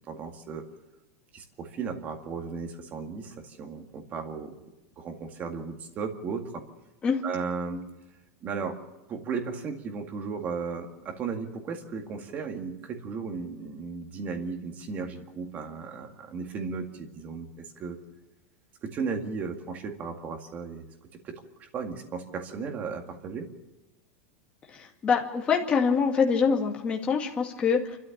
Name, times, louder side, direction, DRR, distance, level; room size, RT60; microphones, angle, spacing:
voice 1, 0.1-0.6 1.3-4.5 5.0-6.6 7.2-7.8 8.4-8.8 9.1-18.0 18.8-20.8 21.2-21.3 21.6-23.5, right 5 dB, 25° right, 4 dB, 2.0 m, -35 dB
voice 2, 24.8-28.0, left 5 dB, 15° left, 0 dB, 2.1 m, -25 dB
28.5 x 13.0 x 7.3 m, 1.1 s
supercardioid pair, 175°, 7 cm